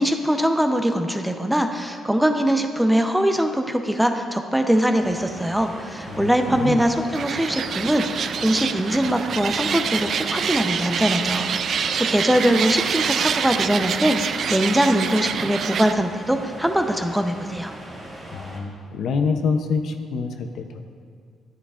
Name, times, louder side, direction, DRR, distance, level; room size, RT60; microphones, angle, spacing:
voice 1, 0.0-17.7, equal, 5° right, 5 dB, 0.6 m, -22 dB
sound 1, 5.0-18.6, right 1 dB, 30° right, 2.0 m, -39 dB
voice 2, 6.1-6.8 18.3-20.8, left 5 dB, 70° left, 6 dB, 0.6 m, -26 dB
sound 2, 7.1-15.9, right 7 dB, 60° right, 0.3 m, -26 dB
10.5 x 10.0 x 2.5 m, 2.1 s
cardioid pair, 90°, 0 cm